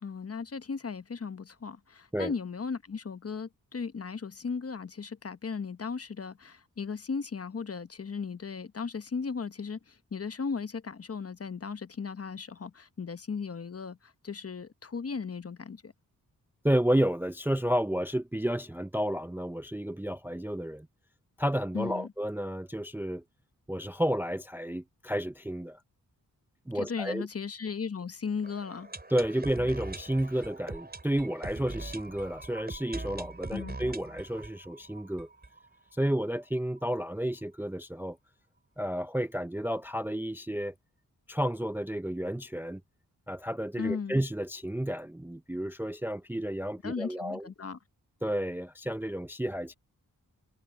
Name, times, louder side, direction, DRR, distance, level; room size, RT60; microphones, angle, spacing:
voice 1, 0.0-15.9 21.7-22.1 26.7-28.9 33.5-33.8 43.8-44.2 46.8-47.8, left 5 dB, 40° left, 0.9 m, -36 dB
voice 2, 16.6-20.9 21.4-23.2 23.7-25.8 26.7-27.3 29.1-35.3 35.9-38.2 38.8-40.7 41.3-42.8 43.3-47.4 48.2-49.7, right 1 dB, 5° right, 0.5 m, -31 dB
sound 1, 28.4-36.2 36.5-36.6 36.8-36.9 37.4-37.5, right 2 dB, 25° right, 5.0 m, -42 dB
wide cardioid pair, 85°, 36 cm